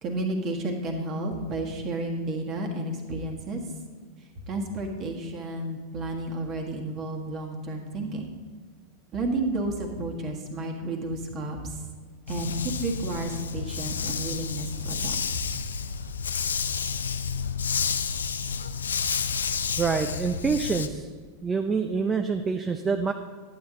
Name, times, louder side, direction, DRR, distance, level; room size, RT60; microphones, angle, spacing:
voice 1, 0.0-3.6 4.5-8.3 9.1-11.7 12.3-15.4, right 2 dB, 30° right, 2 dB, 1.5 m, -31 dB
Dog, 12.3-20.9, left 6 dB, 70° left, 0.4 m, -30 dB
voice 2, 19.8-21.1 21.4-23.1, right 5 dB, 15° right, 5 dB, 0.5 m, -26 dB
11.0 x 8.9 x 3.7 m, 1.5 s
figure-of-eight pair, 90°, 0 cm